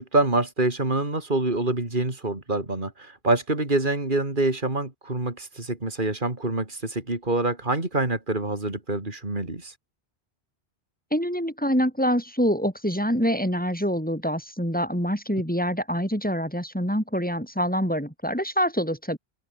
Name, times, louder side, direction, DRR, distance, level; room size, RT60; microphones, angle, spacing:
voice 1, 0.0-9.7, right 2 dB, 50° right, 4.0 m, -26 dB
voice 2, 11.1-19.2, equal, 10° left, 7.9 m, -25 dB
omnidirectional pair, 1.1 m